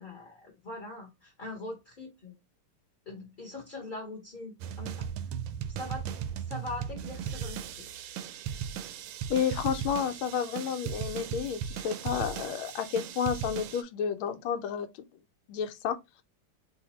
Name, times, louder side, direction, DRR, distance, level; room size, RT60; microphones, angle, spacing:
voice 1, 0.0-2.3 3.1-5.1 5.6-6.0 6.3-7.9, left 2 dB, 30° left, 1.0 m, -42 dB
sound 1, 4.6-13.8, right 8 dB, 90° right, 1.4 m, -37 dB
voice 2, 9.3-14.9 15.5-16.0, left 8 dB, 85° left, 1.4 m, -31 dB
4.1 x 2.5 x 4.1 m
omnidirectional pair, 2.2 m